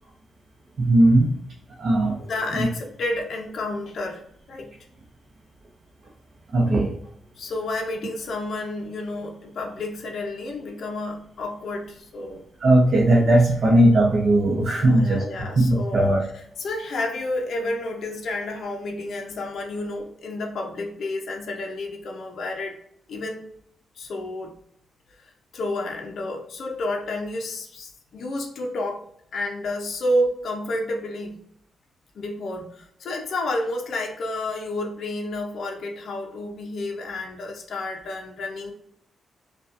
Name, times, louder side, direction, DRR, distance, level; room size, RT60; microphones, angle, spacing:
voice 1, 0.8-1.3 1.8-2.2 2.6-2.7 6.5-6.9 12.6-15.2 15.5-16.2, right 1 dB, 40° right, -3 dB, 0.7 m, -18 dB
voice 2, 2.2-4.2 4.5-4.7 7.4-12.4 13.2-13.3 13.6-13.8 14.7-22.8 23.1-23.5 24.0-24.6 25.5-29.1 29.3-31.4 32.2-38.7, left 1 dB, 55° left, 1 dB, 0.5 m, -30 dB
5.2 x 2.3 x 2.5 m, 0.69 s
wide cardioid pair, 180°, 0 cm